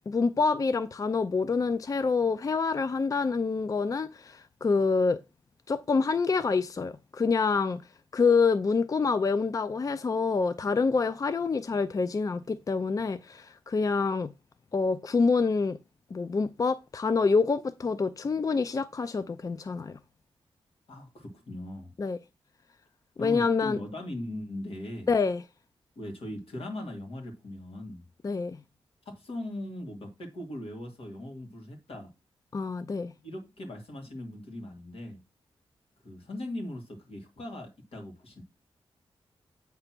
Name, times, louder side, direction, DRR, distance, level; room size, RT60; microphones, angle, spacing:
voice 1, 0.1-5.2 5.7-7.8 8.1-14.3 14.7-15.8 16.1-20.0 22.0-22.2 23.2-23.8 25.1-25.4 28.2-28.6 32.5-33.1, left 4 dB, 35° left, 0.4 m, -26 dB
voice 2, 20.9-21.9 23.2-25.1 26.0-28.0 29.1-32.1 33.2-35.2 36.0-38.4, left 1 dB, 75° left, 2.1 m, -39 dB
7.9 x 3.3 x 5.9 m
cardioid pair, 85°, 10 cm